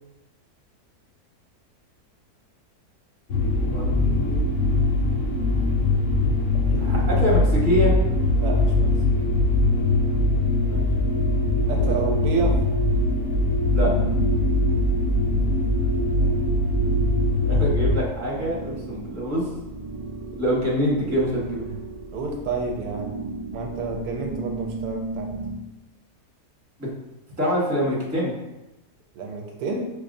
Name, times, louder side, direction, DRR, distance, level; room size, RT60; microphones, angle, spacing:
sound 1, 3.3-18.0, left 2 dB, 70° left, 0.8 m, -21 dB
voice 1, 3.5-4.5 6.8-7.9 10.7-10.8 13.7-13.9 17.4-19.5 20.4-21.7 26.8-26.9 27.4-28.3, equal, 15° right, -5 dB, 0.8 m, -25 dB
voice 2, 6.7-7.0 8.4-8.9 11.7-12.6 16.1-16.3 22.1-23.1 23.5-25.3 29.1-29.9, right 3 dB, 80° right, 1 dB, 1.1 m, -29 dB
sound 2, 13.6-25.6, right 3 dB, 40° right, 0.4 m, -35 dB
5.1 x 2.3 x 2.6 m, 0.98 s
omnidirectional pair, 1.6 m